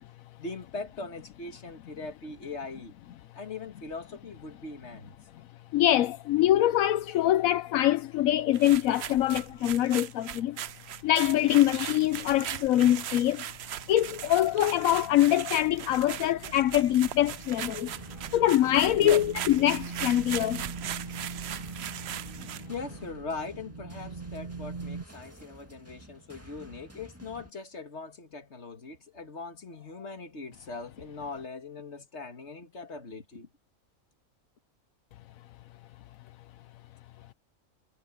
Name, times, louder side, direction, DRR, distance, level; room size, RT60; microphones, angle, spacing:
voice 1, 0.4-2.9 3.3-5.1 19.0-19.3 22.7-33.5, left 3 dB, 55° left, 2.3 m, -40 dB
voice 2, 5.7-10.6 11.0-13.4 13.9-17.9 18.3-20.7, left 13 dB, 80° left, 1.0 m, -24 dB
sound 1, 8.5-22.7, right 11 dB, 60° right, 0.8 m, -39 dB
sound 2, 10.5-25.0, right 4 dB, 30° right, 2.0 m, -44 dB
sound 3, 17.9-27.5, right 1 dB, 10° right, 2.0 m, -52 dB
omnidirectional pair, 1.4 m